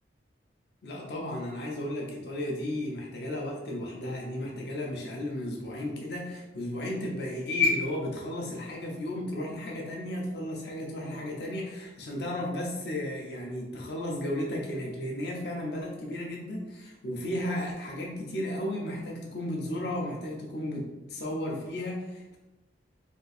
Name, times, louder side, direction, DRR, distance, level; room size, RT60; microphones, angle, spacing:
voice 1, 0.8-22.4, left 1 dB, 65° left, -1 dB, 0.7 m, -33 dB
3.6 x 2.5 x 4.1 m, 1.1 s
head